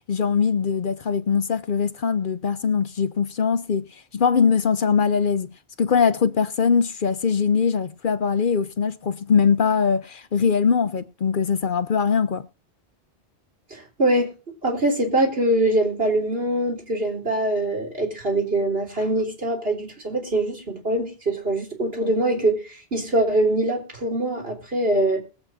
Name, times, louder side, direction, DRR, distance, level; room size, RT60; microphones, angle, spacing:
voice 1, 0.1-3.9 4.1-5.5 5.8-12.5, left 6 dB, 55° left, 0.9 m, -21 dB
voice 2, 13.7-14.3 14.6-25.2, right 1 dB, 65° right, 3.9 m, -23 dB
21.0 x 8.0 x 2.7 m
omnidirectional pair, 1.1 m